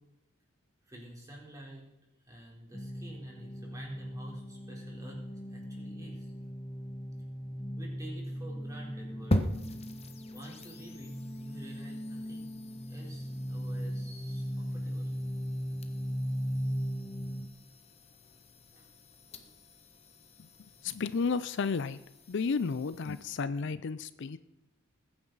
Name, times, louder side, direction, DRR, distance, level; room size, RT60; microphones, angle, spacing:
voice 1, 0.9-1.9 2.2-6.3 7.8-9.4 10.3-12.5 12.9-15.1 18.7-18.9 19.3-19.5, right 1 dB, 15° right, -3 dB, 3.7 m, -49 dB
sound 1, 2.7-17.5, equal, 10° left, 0.7 m, -38 dB
sound 2, 9.3-23.3, equal, 30° left, 1.0 m, -41 dB
voice 2, 20.8-22.0 22.3-24.4, left 5 dB, 60° left, 14 dB, 0.4 m, -32 dB
20.5 x 9.6 x 4.0 m, 0.94 s
head